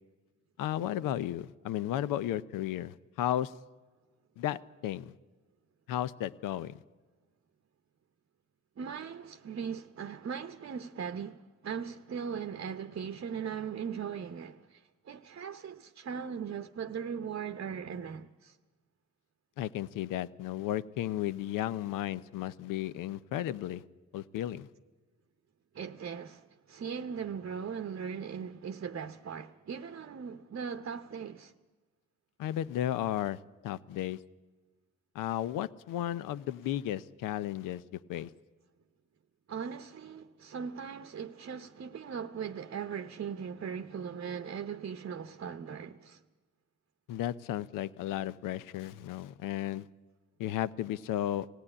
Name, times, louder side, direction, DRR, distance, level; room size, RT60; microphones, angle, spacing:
voice 1, 0.6-3.5 4.4-5.1 5.9-6.8 19.6-23.8 24.1-24.7 32.4-34.2 35.1-37.8 38.1-38.3 47.1-49.9 50.4-51.5, left 12 dB, 85° left, 0.6 m, -34 dB
voice 2, 8.8-18.6 25.7-31.5 39.5-46.2, right 7 dB, 45° right, 0.8 m, -39 dB
19.0 x 15.5 x 9.9 m
supercardioid pair, 55°, 32 cm